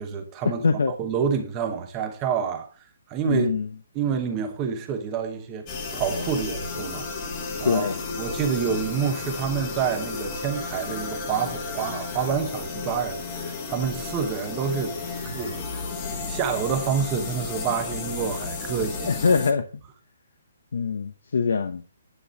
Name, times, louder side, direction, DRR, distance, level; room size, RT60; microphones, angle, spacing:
voice 1, 0.0-0.6 1.0-2.7 3.1-3.5 3.9-5.7 5.9-7.1 7.6-15.0 15.3-15.8 16.3-19.1, right 7 dB, 15° right, 0.9 m, -28 dB
voice 2, 3.2-3.7 7.6-8.0 19.0-19.6 20.7-21.8, left 5 dB, 65° left, 0.8 m, -23 dB
sound 1, 5.7-19.5, left 4 dB, 15° left, 1.3 m, -33 dB
10.0 x 6.8 x 4.0 m
hypercardioid pair, 180°, 0 cm